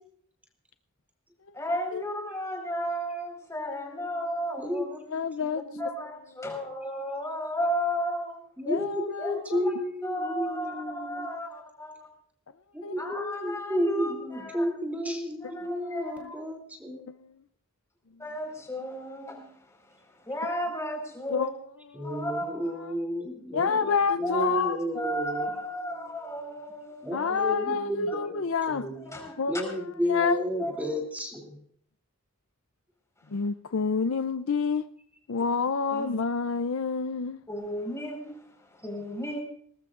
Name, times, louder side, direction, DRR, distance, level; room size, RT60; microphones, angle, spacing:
voice 1, 1.5-4.9 5.8-8.4 9.2-9.3 9.6-9.7 10.0-12.1 13.0-14.7 15.4-16.3 18.2-21.5 22.0-22.7 24.2-24.7 24.9-27.1 28.8-29.6 30.6-30.8 35.9-36.1 37.5-39.4, equal, 15° left, 4.6 m, -34 dB
voice 2, 4.6-5.9 8.6-11.3 12.7-17.0 21.9-25.5 27.0-28.4 28.7-29.0 29.5-31.6, left 1 dB, 5° right, 2.8 m, -32 dB
voice 3, 5.1-5.6 8.7-9.6 12.8-13.0 15.4-15.9 17.1-17.4 21.3-21.5 22.0-23.0 23.5-24.8 27.1-28.9 29.4-29.6 30.1-30.4 33.3-34.8 35.3-37.4, left 5 dB, 60° left, 0.5 m, -28 dB
21.0 x 19.0 x 2.5 m
head